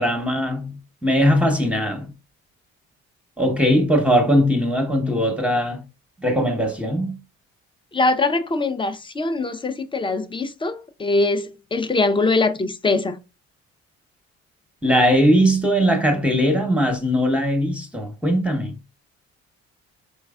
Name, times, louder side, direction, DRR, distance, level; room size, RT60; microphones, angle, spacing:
voice 1, 0.0-2.1 3.4-5.8 6.2-7.2 14.8-18.8, equal, 5° right, 1.0 m, -20 dB
voice 2, 7.9-13.2, left 3 dB, 15° left, 0.5 m, -22 dB
4.2 x 3.1 x 2.4 m
hypercardioid pair, 55°, 32 cm